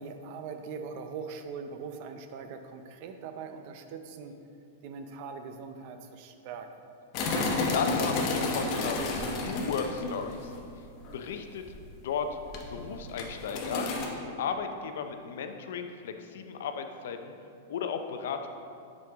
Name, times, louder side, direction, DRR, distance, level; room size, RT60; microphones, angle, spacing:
voice 1, 0.0-4.3 4.8-6.7, right 5 dB, 50° right, 7 dB, 0.6 m, -41 dB
sound 1, 7.1-10.6 10.9-11.1 11.7-12.1 12.5-14.1, left 3 dB, 40° left, 1.0 m, -31 dB
voice 2, 7.7-10.5 11.1-11.7 11.9-12.4 12.7-13.9 14.2-17.3 17.7-18.5, left 6 dB, 75° left, 7 dB, 0.6 m, -35 dB
7.6 x 5.3 x 3.5 m, 2.5 s
supercardioid pair, 150°, 0 cm